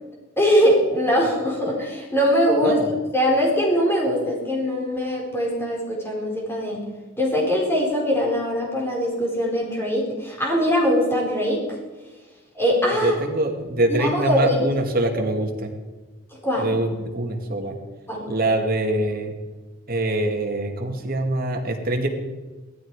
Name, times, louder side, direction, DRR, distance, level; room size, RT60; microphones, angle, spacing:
voice 1, 0.4-2.8 3.1-6.8 7.2-11.8 12.5-13.2 13.9-14.6 16.3-16.8 18.1-18.3, equal, 10° left, -2 dB, 4.3 m, -22 dB
voice 2, 13.0-15.7 16.6-17.8 18.2-19.3 19.9-22.1, right 1 dB, 45° right, 3 dB, 2.2 m, -24 dB
17.5 x 13.5 x 4.9 m, 1.2 s
head